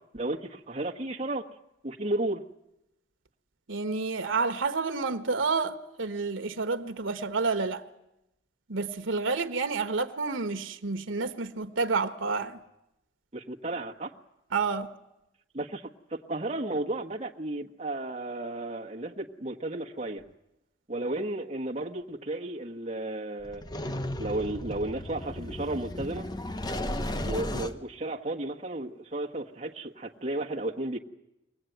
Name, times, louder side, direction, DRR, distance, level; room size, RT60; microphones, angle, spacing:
voice 1, 0.1-1.5 1.8-2.4 13.3-14.1 15.5-15.8 16.1-20.2 20.9-23.6 24.2-26.3 27.2-31.0, right 2 dB, 35° right, 1.4 m, -33 dB
voice 2, 3.7-7.8 8.7-12.6 14.5-14.9, right 4 dB, 90° right, 1.1 m, -29 dB
sound 1, 23.4-27.7, left 1 dB, 20° left, 0.9 m, -34 dB
23.5 x 18.0 x 9.2 m
head